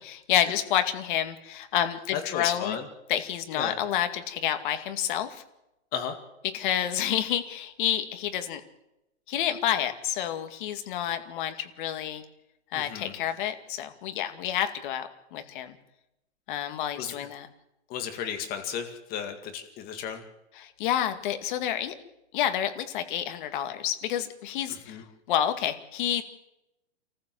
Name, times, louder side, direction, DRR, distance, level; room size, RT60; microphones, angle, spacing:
voice 1, 0.1-2.8 3.1-5.4 6.5-8.6 9.3-12.2 12.7-15.8 16.5-17.5 20.6-21.9 22.3-25.0 25.3-26.2, left 10 dB, 45° left, 8 dB, 2.2 m, -29 dB
voice 2, 2.1-2.9 3.5-3.8 5.9-6.2 12.7-13.1 17.0-17.1 17.9-20.3 24.7-25.0, left 8 dB, 25° left, 7 dB, 2.1 m, -34 dB
27.5 x 14.5 x 7.7 m, 0.92 s
hypercardioid pair, 155°, 34 cm